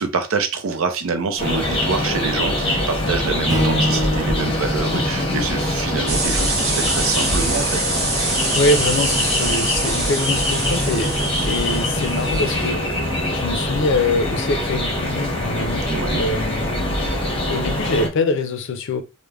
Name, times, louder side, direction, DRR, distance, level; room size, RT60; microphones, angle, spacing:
voice 1, 0.0-7.7 15.9-16.2, right 4 dB, 75° right, 0.5 m, -26 dB
sound 1, 1.4-18.1, left 1 dB, 25° left, 0.8 m, -23 dB
Strum, 3.5-7.8, equal, 15° right, 0.5 m, -27 dB
sound 2, 6.1-12.7, right 3 dB, 50° right, 1.0 m, -25 dB
voice 2, 8.5-17.0 17.5-19.0, left 2 dB, 60° left, 0.4 m, -24 dB
3.2 x 2.1 x 2.3 m
head